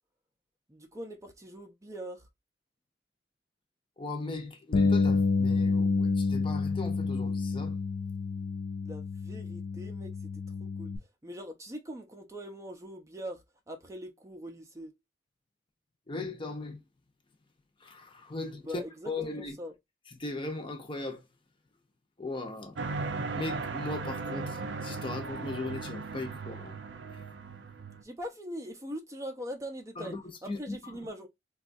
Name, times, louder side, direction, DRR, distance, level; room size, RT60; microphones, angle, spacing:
voice 1, 0.7-2.2 8.8-10.9 11.2-14.9 18.6-19.7 28.0-31.3, equal, 15° right, 0.5 m, -42 dB
voice 2, 4.0-7.8 16.1-16.8 17.8-19.5 20.2-21.2 22.2-22.8 23.3-26.8 27.1-27.2 30.0-30.2 30.5-31.1, left 2 dB, 30° left, 0.7 m, -38 dB
Bass guitar, 4.7-11.0, left 4 dB, 60° left, 0.4 m, -29 dB
sound 1, 22.8-28.0, right 4 dB, 90° right, 0.5 m, -37 dB
3.8 x 2.3 x 2.5 m
head